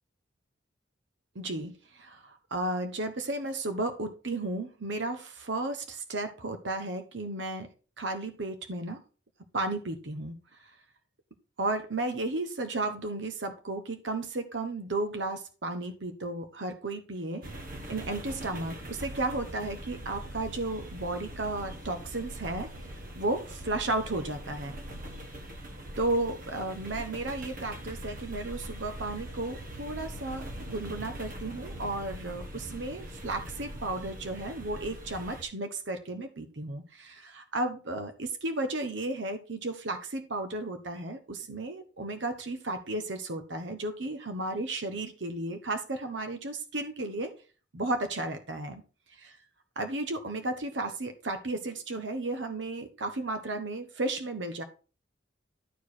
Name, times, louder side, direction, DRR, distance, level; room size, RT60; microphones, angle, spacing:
voice 1, 1.3-7.7 8.0-9.0 9.5-10.4 11.6-17.4 17.9-24.8 26.0-47.3 47.7-48.8 49.8-54.6, right 2 dB, 80° right, 7 dB, 1.1 m, -34 dB
sound 1, 17.4-35.4, right 1 dB, 50° right, 1.2 m, -42 dB
11.5 x 4.9 x 4.3 m, 0.35 s
head